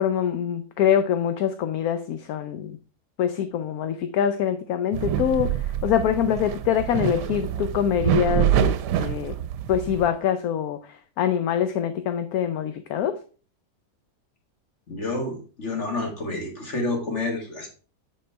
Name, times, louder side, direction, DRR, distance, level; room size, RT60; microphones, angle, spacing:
voice 1, 0.0-2.8 3.2-9.4 9.7-13.2, left 9 dB, 70° left, 1.0 m, -24 dB
sound 1, 4.9-10.1, right 10 dB, 90° right, 1.2 m, -26 dB
voice 2, 14.9-17.7, left 2 dB, 45° left, 2.2 m, -29 dB
8.5 x 4.4 x 4.5 m
omnidirectional pair, 1.8 m